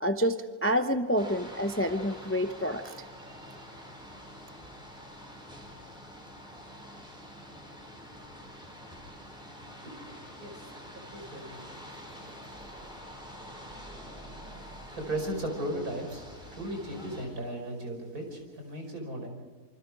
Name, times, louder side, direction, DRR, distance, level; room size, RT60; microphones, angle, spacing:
voice 1, 0.0-2.9, equal, 15° left, 7 dB, 0.6 m, -28 dB
sound 1, 1.2-17.3, equal, 5° right, 5.7 m, -47 dB
voice 2, 9.8-11.7 15.0-16.2 16.5-19.3, right 1 dB, 65° right, 2 dB, 5.9 m, -36 dB
27.0 x 25.0 x 4.9 m, 1.5 s
omnidirectional pair, 1.7 m